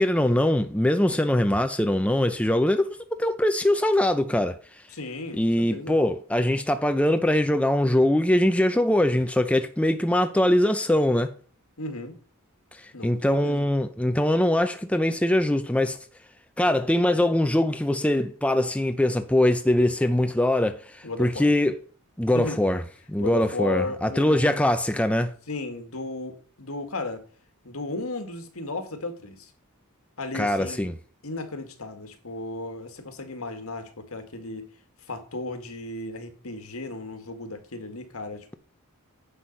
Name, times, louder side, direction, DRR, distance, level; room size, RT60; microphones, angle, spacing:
voice 1, 0.0-4.6 5.4-11.3 12.7-16.0 16.6-21.8 22.2-22.8 23.1-25.3 30.3-30.9, left 1 dB, 5° left, 0.6 m, -22 dB
voice 2, 4.9-6.0 11.8-12.2 12.9-13.7 21.0-21.5 22.3-22.6 23.2-24.6 25.5-27.2 27.6-29.5 30.2-30.9 31.2-34.7 35.1-38.6, left 2 dB, 70° left, 2.0 m, -35 dB
10.0 x 6.3 x 5.5 m
head